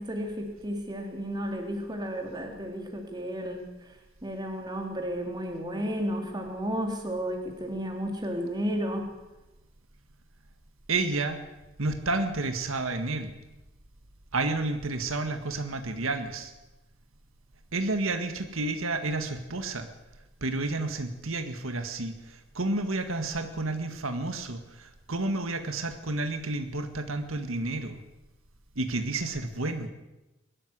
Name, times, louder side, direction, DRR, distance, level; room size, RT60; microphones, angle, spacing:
voice 1, 0.0-3.6 4.2-9.1, equal, 20° right, 2 dB, 3.5 m, -32 dB
voice 2, 10.9-11.4 11.8-13.3 14.3-16.5 17.7-19.9 20.4-28.0 28.8-29.9, right 2 dB, 80° right, 7 dB, 1.9 m, -30 dB
21.5 x 13.0 x 9.6 m, 1.0 s
head